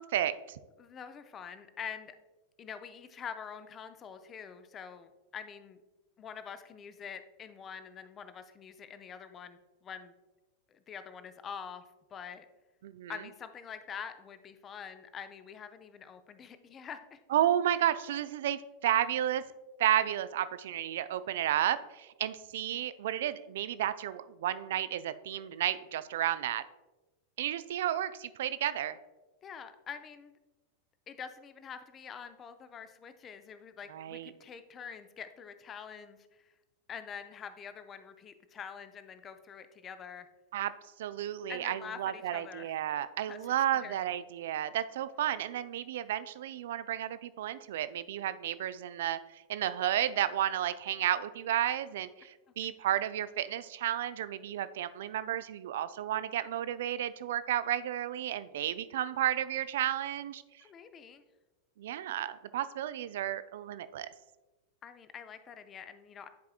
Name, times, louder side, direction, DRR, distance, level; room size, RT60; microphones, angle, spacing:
voice 1, 0.0-0.6 12.8-13.1 17.3-19.4 19.8-26.6 27.4-29.0 33.9-34.3 40.5-40.7 41.0-49.2 49.5-60.4 61.8-64.1, right 11 dB, 55° right, 14 dB, 0.3 m, -32 dB
voice 2, 0.8-2.1 2.6-5.8 6.2-10.1 10.7-11.8 12.1-12.5 13.1-17.2 29.4-30.3 31.1-36.5 36.9-40.3 41.5-42.7 43.3-44.0 60.6-61.2 64.8-66.3, left 7 dB, 25° left, 10 dB, 0.5 m, -45 dB
10.5 x 4.8 x 2.4 m, 1.1 s
figure-of-eight pair, 90°, 0 cm